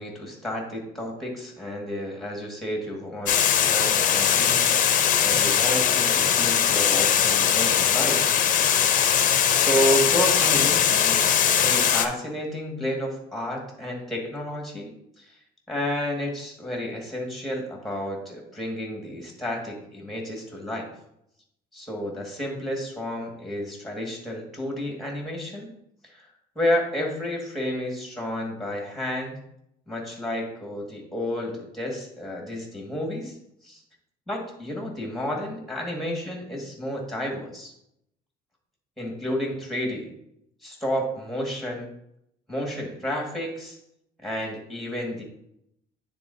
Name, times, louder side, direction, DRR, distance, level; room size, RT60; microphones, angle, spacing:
voice 1, 0.0-4.7 5.2-8.3 9.5-15.3 15.7-20.9 21.7-25.7 26.1-26.3 26.6-29.4 29.9-33.4 33.6-33.8 34.3-37.7 39.0-40.1 40.6-41.9 42.5-43.8 44.2-45.2, equal, ahead, -1 dB, 1.9 m, -31 dB
Water, 3.3-12.1, left 9 dB, 50° left, 0.6 m, -21 dB
9.8 x 3.8 x 2.7 m, 0.77 s
cardioid pair, 110°, 17 cm